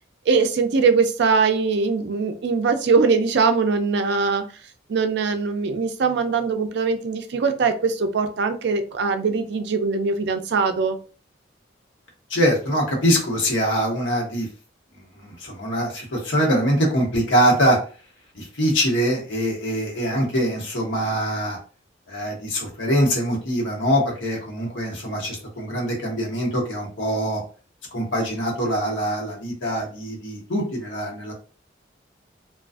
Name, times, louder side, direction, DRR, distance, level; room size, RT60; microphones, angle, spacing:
voice 1, 0.3-4.4 4.9-11.0, right 4 dB, 60° right, 7 dB, 0.4 m, -21 dB
voice 2, 12.3-14.5 15.2-17.8 18.3-21.6 22.1-27.4 27.9-31.3, equal, 75° left, -1 dB, 0.9 m, -23 dB
2.4 x 2.3 x 2.3 m, 0.38 s
head